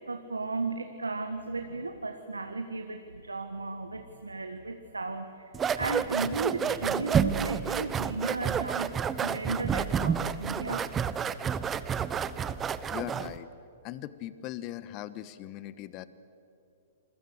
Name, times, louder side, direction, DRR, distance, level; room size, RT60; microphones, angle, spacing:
voice 1, 0.0-8.9 9.2-10.9, right 3 dB, 90° right, 7 dB, 1.5 m, -35 dB
sound 1, 5.5-13.4, right 7 dB, 20° right, 0.9 m, -30 dB
voice 2, 12.7-13.5 13.8-16.1, left 13 dB, 35° left, 15 dB, 1.3 m, -40 dB
28.0 x 22.0 x 8.0 m, 2.8 s
figure-of-eight pair, 115°, 0 cm